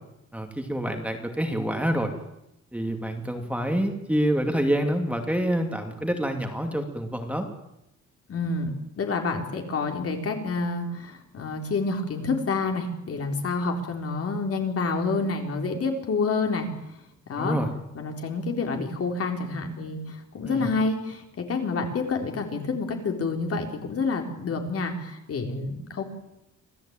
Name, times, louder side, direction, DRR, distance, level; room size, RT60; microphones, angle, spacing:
voice 1, 0.3-2.1 2.7-7.5 17.4-17.7 20.5-20.7, equal, 5° right, 4 dB, 2.5 m, -27 dB
voice 2, 8.3-16.7 17.3-17.6 17.9-26.0, left 3 dB, 50° left, 3 dB, 4.1 m, -28 dB
26.0 x 16.0 x 8.9 m, 0.85 s
cardioid pair, 145°, 29 cm